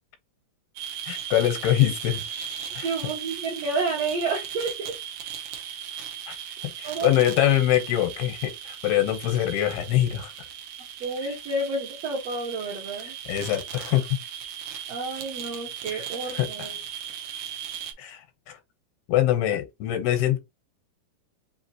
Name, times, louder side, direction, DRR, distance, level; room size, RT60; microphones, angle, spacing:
sound 1, 0.8-17.9, right 9 dB, 90° right, 1.6 m, -37 dB
voice 1, 1.1-2.2 2.7-2.9 6.3-6.4 6.8-10.3 13.3-14.1 15.9-16.0 16.3-16.5 18.0-18.2 19.1-20.4, left 12 dB, 85° left, 2.8 m, -23 dB
voice 2, 2.8-4.9 6.8-7.1 11.0-13.2 14.9-16.8, right 3 dB, 65° right, 1.6 m, -30 dB
5.7 x 2.8 x 2.8 m
omnidirectional pair, 4.6 m